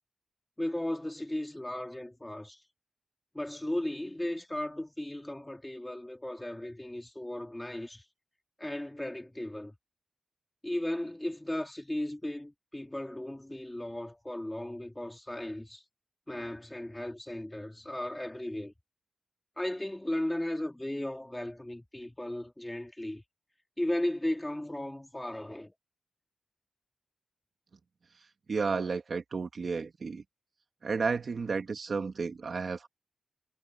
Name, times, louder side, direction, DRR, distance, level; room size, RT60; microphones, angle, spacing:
voice 1, 0.6-2.6 3.3-8.1 8.6-9.8 10.6-15.8 16.3-18.7 19.6-23.2 23.8-25.7, left 1 dB, 10° left, 3.2 m, -36 dB
voice 2, 28.5-30.2 30.8-32.9, right 4 dB, 50° right, 1.8 m, -32 dB
wide cardioid pair, 145°, 0 cm